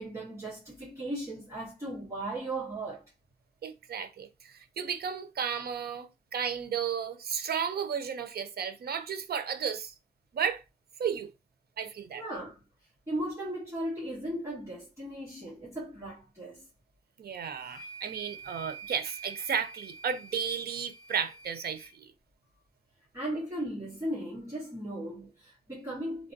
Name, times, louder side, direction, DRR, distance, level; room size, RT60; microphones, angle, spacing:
voice 1, 0.0-3.0 12.1-12.6 13.1-16.7 23.1-26.3, right 1 dB, 20° right, 2.0 m, -37 dB
voice 2, 3.6-9.9 10.3-10.6 11.0-11.3 11.8-12.2 17.2-22.1, right 7 dB, 80° right, 0.5 m, -33 dB
sound 1, 17.6-21.9, right 5 dB, 20° left, 2.0 m, -47 dB
3.3 x 3.2 x 2.6 m
wide cardioid pair, 110°, 16 cm